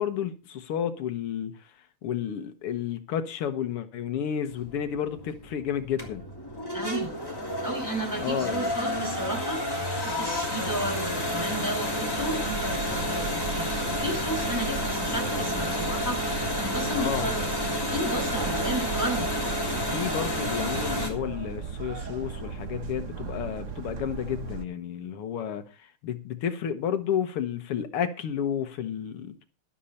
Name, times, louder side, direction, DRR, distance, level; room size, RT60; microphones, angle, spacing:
voice 1, 0.0-1.7 2.0-6.2 8.2-8.7 17.0-17.3 19.7-29.4, left 9 dB, 85° left, 2.1 m, -31 dB
sound 1, 4.5-21.1, left 1 dB, 10° left, 2.9 m, -30 dB
voice 2, 6.7-7.1 7.6-17.5 17.7-19.3, right 1 dB, 10° right, 5.7 m, -33 dB
sound 2, 12.1-24.6, right 5 dB, 45° right, 1.1 m, -37 dB
12.0 x 11.5 x 4.2 m
omnidirectional pair, 2.4 m